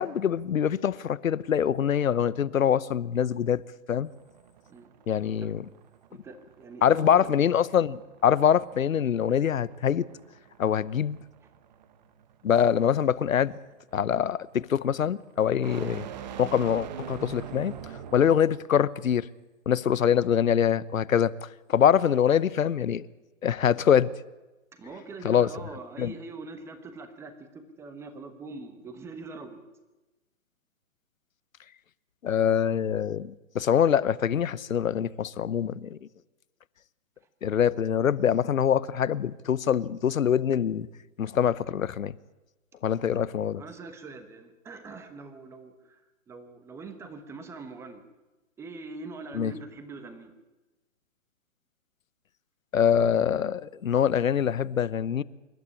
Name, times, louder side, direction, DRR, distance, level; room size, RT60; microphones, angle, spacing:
voice 1, 0.0-3.6 3.9-4.1 5.1-5.6 6.8-10.0 10.6-11.2 12.4-13.5 13.9-16.1 16.4-17.7 18.1-19.3 19.7-23.1 23.4-24.1 25.2-25.5 26.0-26.1 32.2-36.1 37.4-40.9 41.2-42.1 42.8-43.6 49.3-49.5 52.7-55.2, left 8 dB, 75° left, 1.0 m, -24 dB
sound 1, 4.1-18.6, right 9 dB, 35° right, 1.2 m, -45 dB
voice 2, 6.1-7.3 10.6-10.8 24.7-29.6 42.9-43.3 43.5-46.0 46.3-48.0 48.6-50.3, right 3 dB, 5° right, 1.2 m, -43 dB
26.5 x 12.0 x 9.8 m
hypercardioid pair, 150°, 40 cm